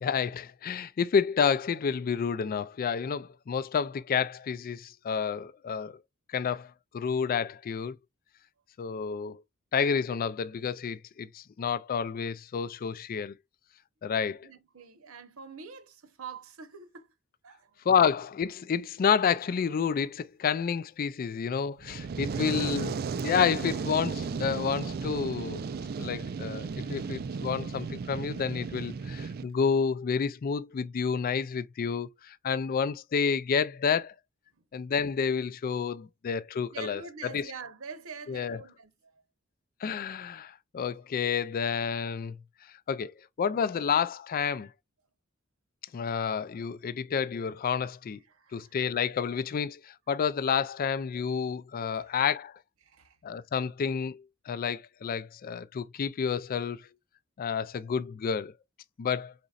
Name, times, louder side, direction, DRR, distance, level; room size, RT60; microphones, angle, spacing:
voice 1, 0.0-6.0 6.3-8.0 8.8-9.4 9.7-13.3 14.0-14.5 17.9-23.0 23.2-25.7 26.0-34.1 34.7-37.5 38.3-38.6 39.8-42.4 42.9-44.7 45.9-48.2 48.5-52.5 53.2-56.8 57.4-58.5 59.0-59.3, left 6 dB, 45° left, 0.3 m, -29 dB
voice 2, 14.3-17.1 17.4-17.7 22.2-22.7 36.7-39.2 48.3-48.8 51.9-52.0 52.8-53.2, right 5 dB, 70° right, 0.9 m, -45 dB
Fire, 21.8-29.4, right 5 dB, 45° right, 0.4 m, -34 dB
5.1 x 4.0 x 2.4 m
head